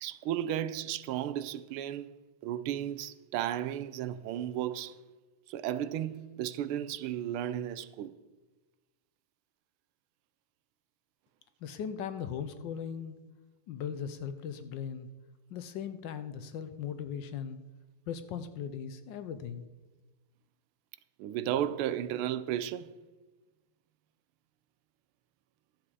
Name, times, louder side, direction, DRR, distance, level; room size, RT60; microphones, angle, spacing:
voice 1, 0.0-2.1 2.4-5.0 5.5-8.1 21.2-22.9, right 11 dB, 90° right, 1.5 m, -34 dB
voice 2, 11.6-13.2 13.7-15.1 15.5-17.6 18.1-19.7, left 8 dB, 70° left, 1.2 m, -38 dB
12.5 x 7.8 x 4.7 m
omnidirectional pair, 2.3 m